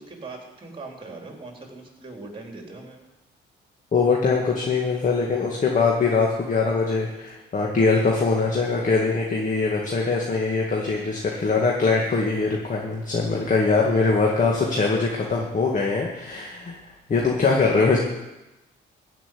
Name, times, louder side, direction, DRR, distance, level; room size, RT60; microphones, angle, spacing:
voice 1, 0.0-3.1, right 3 dB, 25° right, 1 dB, 4.0 m, -40 dB
voice 2, 3.9-16.8 17.1-18.0, left 4 dB, 40° left, -1 dB, 2.2 m, -22 dB
15.5 x 6.0 x 9.5 m, 1.0 s
cardioid pair, 90°, 20 cm